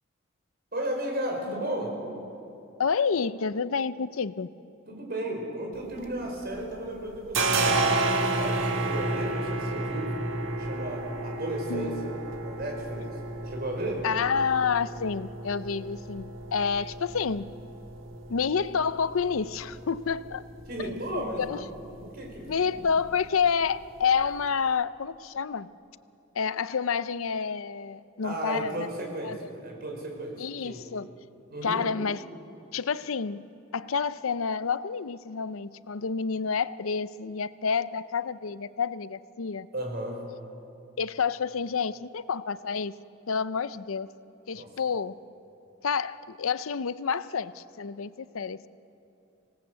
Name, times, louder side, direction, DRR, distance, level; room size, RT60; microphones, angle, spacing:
voice 1, 0.7-2.0 4.9-10.1 10.6-12.1 12.4-13.1 13.4-14.1 20.7-21.6 22.0-22.9 28.2-30.8 31.5-31.9 39.7-40.2 44.5-44.7, right 1 dB, 50° right, 1 dB, 5.1 m, -34 dB
voice 2, 2.8-4.5 11.7-12.1 14.0-17.5 18.3-20.4 20.8-21.6 22.5-25.7 26.3-28.9 29.2-29.4 30.4-31.1 31.6-32.2 32.7-33.4 33.7-39.7 41.0-42.9 43.3-44.1 44.5-45.1 45.8-48.7, left 6 dB, 90° left, 15 dB, 0.6 m, -29 dB
sound 1, 5.8-6.7 6.9-24.5, right 2 dB, 70° right, 1.7 m, -32 dB
26.0 x 18.0 x 8.1 m, 2.7 s
head